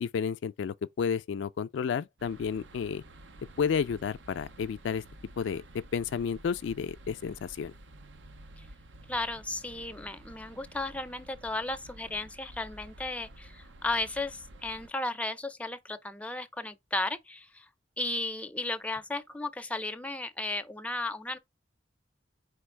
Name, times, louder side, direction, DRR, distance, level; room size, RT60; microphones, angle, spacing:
voice 1, 0.0-3.0 3.6-5.0 5.4-5.6 5.9-7.7, left 6 dB, 75° left, 0.3 m, -31 dB
sound 1, 2.2-14.9, right 1 dB, 85° right, 0.7 m, -51 dB
voice 2, 9.1-17.7 18.0-21.4, left 2 dB, 5° left, 0.4 m, -35 dB
4.6 x 3.4 x 3.2 m
head